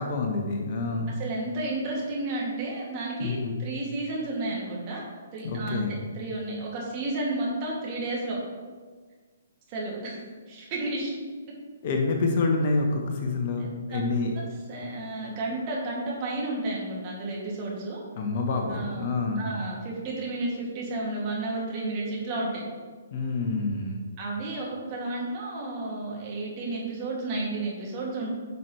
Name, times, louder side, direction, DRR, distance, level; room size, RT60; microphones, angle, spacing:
voice 1, 0.0-1.2 3.2-3.6 5.4-6.0 11.8-14.3 18.2-19.5 23.1-24.0, left 3 dB, 45° left, 2 dB, 1.2 m, -27 dB
voice 2, 1.2-5.0 5.3-5.8 6.1-8.4 9.7-10.2 10.5-11.2 13.6-14.0 14.3-18.0 18.7-19.0 19.4-22.6 24.2-28.3, right 2 dB, 30° right, -4 dB, 2.6 m, -32 dB
11.0 x 6.0 x 3.3 m, 1.5 s
figure-of-eight pair, 130°, 0 cm